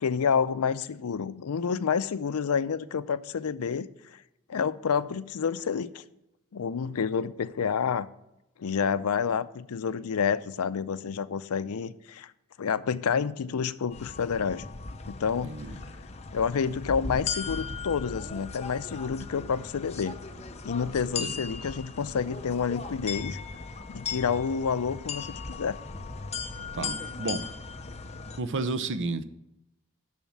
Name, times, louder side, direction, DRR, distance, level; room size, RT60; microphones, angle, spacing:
voice 1, 0.0-4.2 4.5-6.0 6.5-8.1 8.6-12.3 12.6-14.6 15.1-15.6 16.3-20.2 20.6-23.4 23.9-25.8, left 6 dB, 80° left, 15 dB, 0.5 m, -29 dB
sound 1, 13.9-28.4, left 4 dB, 30° left, 0.7 m, -38 dB
voice 2, 15.4-15.8 21.2-21.4 26.7-27.4 28.4-29.2, right 3 dB, 55° right, 11 dB, 0.7 m, -31 dB
7.2 x 6.4 x 7.2 m, 0.88 s
head